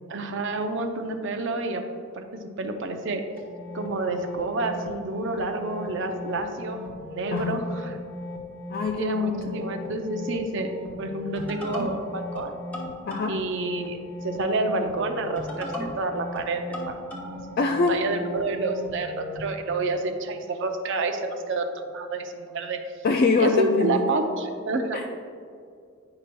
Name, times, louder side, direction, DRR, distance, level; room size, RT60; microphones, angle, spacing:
voice 1, 0.1-1.8 2.2-3.2 3.7-6.8 7.1-8.0 9.0-12.6 13.3-14.0 14.2-17.0 17.9-22.8 23.4-25.0, right 2 dB, 60° right, 5 dB, 0.6 m, -29 dB
sound 1, 3.4-19.5, left 2 dB, 5° left, 1.1 m, -37 dB
voice 2, 8.7-9.6 13.1-13.3 17.6-18.0 23.0-24.0 24.9-25.1, left 4 dB, 45° left, 3 dB, 0.3 m, -24 dB
9.6 x 5.9 x 2.2 m, 2.3 s
head